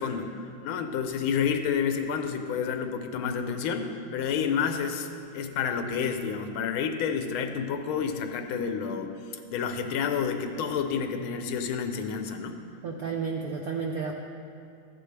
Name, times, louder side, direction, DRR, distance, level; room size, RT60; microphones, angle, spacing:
voice 1, 0.0-9.1 9.5-12.6, left 6 dB, 85° left, 6 dB, 1.6 m, -29 dB
voice 2, 12.8-14.1, right 5 dB, 75° right, 1 dB, 0.8 m, -31 dB
14.0 x 9.9 x 3.3 m, 2.6 s
omnidirectional pair, 2.3 m